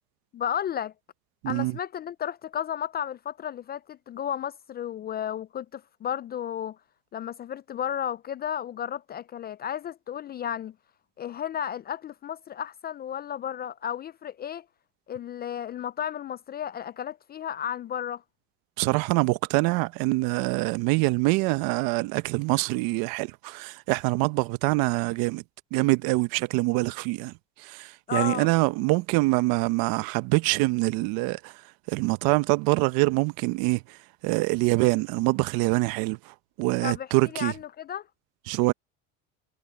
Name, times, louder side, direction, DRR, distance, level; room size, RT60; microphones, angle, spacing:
voice 1, 0.3-0.9 1.5-6.8 7.1-10.7 11.2-14.6 15.1-18.2 28.1-28.5 36.8-38.1, left 9 dB, 25° left, 0.4 m, -33 dB
voice 2, 1.4-1.8 18.8-25.4 25.7-27.3 27.6-31.6 31.9-34.0 34.2-37.5 38.5-38.7, right 23 dB, 65° right, 1.1 m, -25 dB
supercardioid pair, 100°, 38 cm